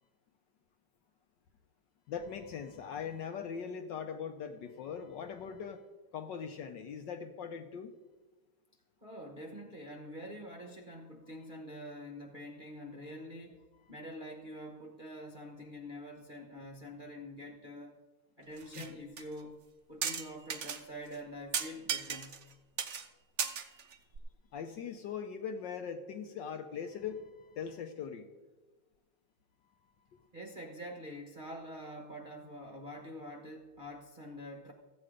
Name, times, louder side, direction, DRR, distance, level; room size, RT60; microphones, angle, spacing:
voice 1, 2.1-5.8 6.1-7.9 10.9-11.0 11.3-11.4 13.7-13.9 24.5-28.3 29.6-30.3, left 7 dB, 70° left, 7 dB, 1.2 m, -41 dB
voice 2, 9.0-18.0 18.4-19.6 19.9-22.4 30.3-34.7, equal, 35° right, 1 dB, 0.8 m, -46 dB
sound 1, 18.6-18.9 19.2-19.3 20.0-20.8 21.1-21.2 21.5-22.5 22.8-23.1 23.4-24.2, right 7 dB, 85° right, 0.6 m, -35 dB
14.5 x 8.6 x 4.9 m, 1.2 s
omnidirectional pair, 2.4 m